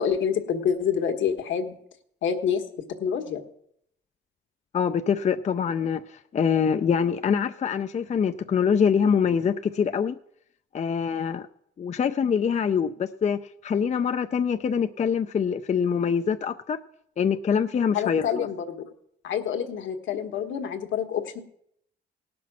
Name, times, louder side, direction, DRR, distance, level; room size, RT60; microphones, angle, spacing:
voice 1, 0.0-1.8 2.2-2.6 3.0-3.4 17.9-18.9 19.2-21.4, left 7 dB, 75° left, 5 dB, 1.5 m, -27 dB
voice 2, 4.7-10.2 10.7-11.5 11.8-16.8 17.2-18.5, left 7 dB, 35° left, 8 dB, 0.5 m, -24 dB
17.5 x 6.0 x 6.1 m, 0.72 s
cardioid pair, 90°, 20 cm